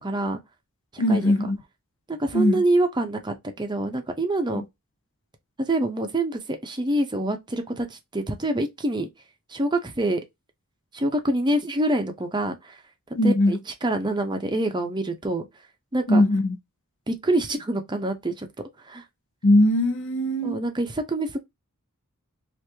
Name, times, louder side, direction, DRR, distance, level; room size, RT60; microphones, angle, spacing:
voice 1, 0.0-0.4 0.9-1.3 2.1-4.6 5.7-9.1 9.5-10.2 10.9-12.8 13.2-15.5 15.9-16.2 17.1-18.5 18.9-19.0 20.4-21.4, right 1 dB, 20° right, 0.6 m, -26 dB
voice 2, 1.0-1.6 2.3-2.6 4.5-4.6 13.2-13.5 16.1-16.6 19.4-20.6, left 1 dB, 55° left, 0.6 m, -20 dB
3.0 x 2.5 x 3.4 m
head